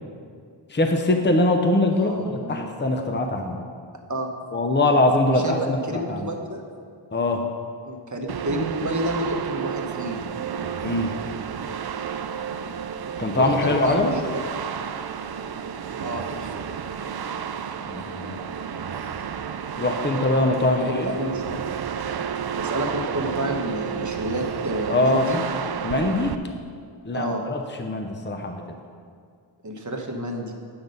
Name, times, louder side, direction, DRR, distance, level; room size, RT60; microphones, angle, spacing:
voice 1, 0.7-3.6 4.5-6.3 7.1-7.4 10.8-11.1 13.2-14.1 17.9-18.4 19.8-21.1 24.9-25.3 25.8-26.3 27.0-28.6, left 2 dB, 25° left, 4 dB, 0.7 m, -22 dB
voice 2, 1.9-2.7 4.1-4.3 5.3-6.6 7.8-10.2 13.4-14.4 16.0-16.6 20.7-21.6 22.5-25.4 27.1-27.4 29.6-30.5, right 1 dB, 40° right, 2 dB, 1.1 m, -30 dB
sound 1, 8.3-26.4, right 7 dB, 55° right, 0.5 m, -31 dB
8.8 x 6.0 x 5.4 m, 2.2 s
wide cardioid pair, 55°, 48 cm